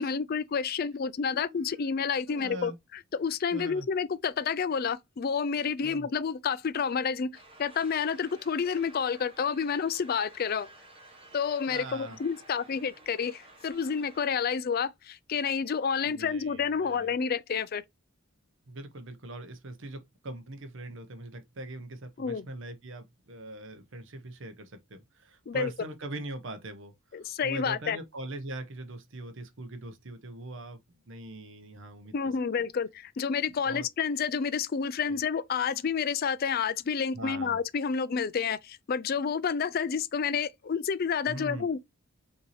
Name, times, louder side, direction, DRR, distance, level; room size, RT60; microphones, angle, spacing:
voice 1, 0.0-2.7 3.1-7.3 7.6-10.7 11.3-17.8 22.2-22.5 25.5-25.7 27.1-28.0 32.1-41.8, left 6 dB, 45° left, 0.3 m, -29 dB
voice 2, 1.3-1.9 2.3-2.8 3.5-3.9 5.8-6.1 11.7-12.2 16.0-17.1 18.7-26.9 27.4-30.8 31.1-32.1 33.6-33.8 35.0-35.2 37.1-37.6 41.3-41.7, right 1 dB, 60° right, 0.8 m, -41 dB
sound 1, 7.3-14.2, right 2 dB, 25° right, 1.1 m, -53 dB
5.3 x 2.8 x 3.1 m
head